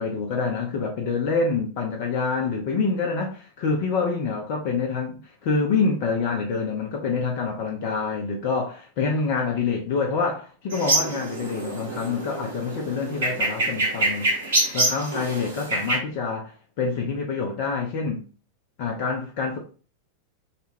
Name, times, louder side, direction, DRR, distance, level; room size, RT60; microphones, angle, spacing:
voice 1, 0.0-14.3 14.7-18.2 18.8-19.6, left 4 dB, 45° left, 0.5 m, -26 dB
sound 1, 10.7-16.0, right 1 dB, 60° right, 0.9 m, -26 dB
2.3 x 2.2 x 3.1 m
figure-of-eight pair, 90°, 0 cm